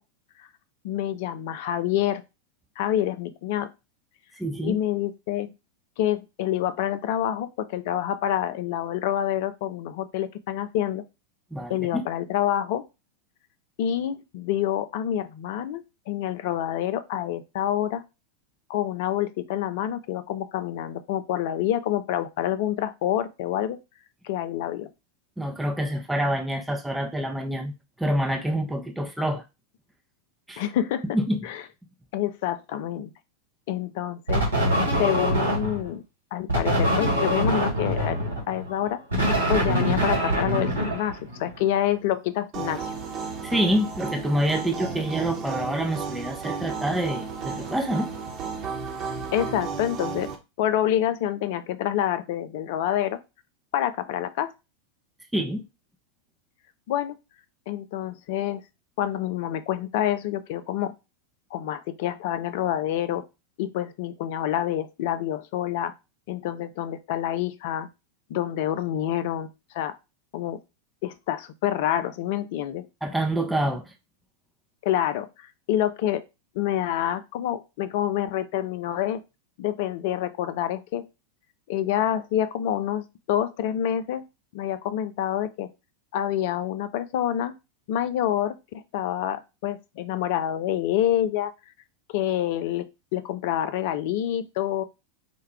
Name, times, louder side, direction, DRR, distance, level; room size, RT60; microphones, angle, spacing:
voice 1, 0.8-2.2 2.8-3.7 4.6-5.5 6.0-11.0 11.7-12.8 13.8-18.0 18.7-23.8 24.2-24.9 30.6-31.2 31.4-31.6 32.1-33.1 33.7-34.4 35.0-36.0 36.3-39.0 39.5-42.9 49.3-50.3 50.6-53.2 53.7-54.5 56.9-57.2 57.7-58.6 59.0-60.9 61.5-63.2 63.6-65.9 66.3-67.9 68.3-69.5 69.7-70.0 70.3-70.6 71.0-72.9 74.8-76.2 76.5-79.2 79.6-81.0 81.7-84.2 84.5-85.7 86.1-87.6 87.9-91.5 92.1-94.8, left 11 dB, 50° left, 0.4 m, -27 dB
voice 2, 4.4-4.8 11.5-12.0 25.4-27.7 28.0-29.4 30.5-30.6 31.1-31.4 43.4-48.1 55.3-55.6 73.0-73.9, right 1 dB, 5° right, 0.6 m, -26 dB
sound 1, 34.3-35.9 36.5-41.6, right 1 dB, 80° right, 1.7 m, -24 dB
sound 2, 42.5-50.4, right 5 dB, 30° right, 1.0 m, -33 dB
4.5 x 2.2 x 3.4 m
figure-of-eight pair, 90°, 0 cm